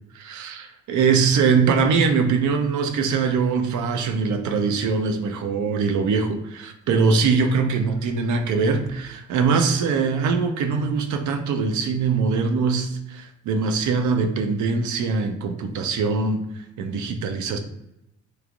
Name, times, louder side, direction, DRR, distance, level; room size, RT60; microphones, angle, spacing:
voice 1, 0.1-17.6, right 5 dB, 75° right, 6 dB, 0.6 m, -22 dB
3.2 x 2.4 x 3.7 m, 0.87 s
cardioid pair, 90°, 30 cm